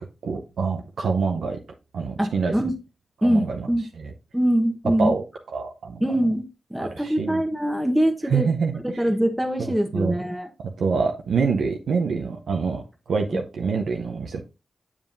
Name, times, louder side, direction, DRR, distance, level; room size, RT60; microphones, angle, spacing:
voice 1, 0.0-1.6 1.9-2.5 3.3-3.7 4.0-4.1 5.0-5.2 5.5-6.0 6.8-7.4 8.3-9.0 9.6-10.1 10.6-14.4, right 5 dB, 85° right, 2 dB, 0.7 m, -26 dB
voice 2, 2.2-2.7 3.2-3.8 4.3-5.1 6.0-6.4 6.7-8.5 8.8-10.5, equal, 5° right, 3 dB, 1.2 m, -23 dB
7.4 x 7.1 x 2.6 m, 0.30 s
cardioid pair, 50°, 0 cm